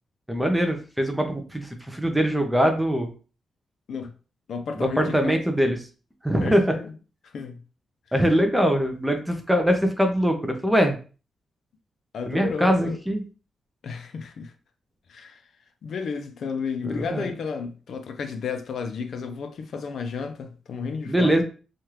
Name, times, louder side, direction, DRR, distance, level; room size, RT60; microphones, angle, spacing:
voice 1, 0.3-3.1 4.8-5.8 6.2-6.7 8.1-11.0 12.3-13.2 16.8-17.3 21.1-21.4, equal, 5° right, 0.5 m, -22 dB
voice 2, 4.5-5.4 6.4-6.9 7.2-7.6 12.1-13.0 13.8-14.5 15.1-15.4 15.8-21.4, left 5 dB, 65° left, 0.4 m, -32 dB
3.1 x 2.4 x 2.9 m
wide cardioid pair, 125°, 0 cm